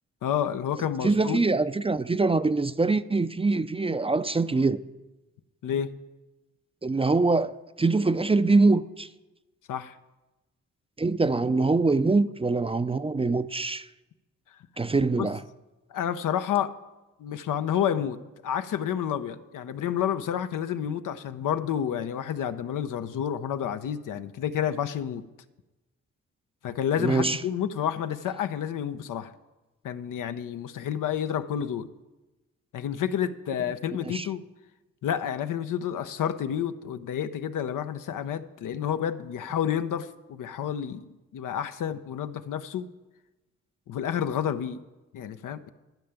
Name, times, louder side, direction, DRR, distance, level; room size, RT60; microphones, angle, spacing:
voice 1, 0.2-1.5 5.6-5.9 9.7-10.0 15.2-15.3 15.9-16.7 17.2-18.2 18.4-25.2 26.6-29.3 29.8-31.9 32.7-34.4 35.0-42.9 43.9-44.8 45.1-45.7, left 9 dB, 80° left, 0.7 m, -30 dB
voice 2, 1.0-4.8 6.8-9.1 11.0-13.9 14.8-15.4 27.0-27.4 34.0-34.3, right 3 dB, 20° right, 0.4 m, -24 dB
12.0 x 5.7 x 8.8 m
cardioid pair, 55°, 31 cm